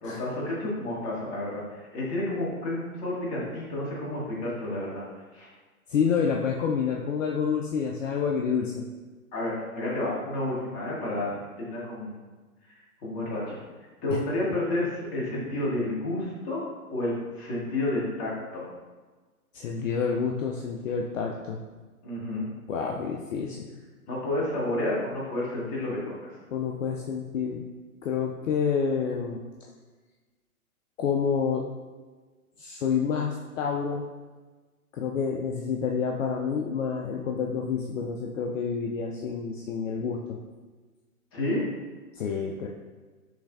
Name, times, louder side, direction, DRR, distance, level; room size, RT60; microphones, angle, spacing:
voice 1, 0.0-5.0 5.3-5.5 9.3-12.2 12.7-13.6 14.0-16.6 16.9-18.6 22.0-22.5 24.1-26.3 41.3-41.6, left 1 dB, 25° left, -5 dB, 1.4 m, -30 dB
voice 2, 5.9-8.8 14.1-14.2 19.5-21.6 22.7-23.7 26.5-27.6 28.0-29.4 31.0-31.7 32.6-34.0 34.9-40.4 42.1-42.7, left 6 dB, 60° left, 1 dB, 0.5 m, -28 dB
6.1 x 3.2 x 2.5 m, 1.3 s
figure-of-eight pair, 125°, 45 cm